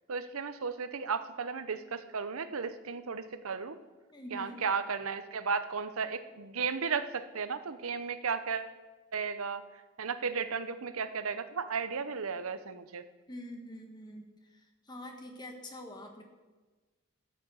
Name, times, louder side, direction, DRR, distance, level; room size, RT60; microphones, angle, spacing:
voice 1, 0.1-3.8 4.3-8.7 9.1-9.6 10.0-13.1, right 5 dB, 75° right, 12 dB, 0.7 m, -34 dB
voice 2, 4.1-4.6 13.3-16.2, left 1 dB, 20° left, 3 dB, 1.5 m, -45 dB
13.0 x 6.3 x 7.8 m, 1.3 s
head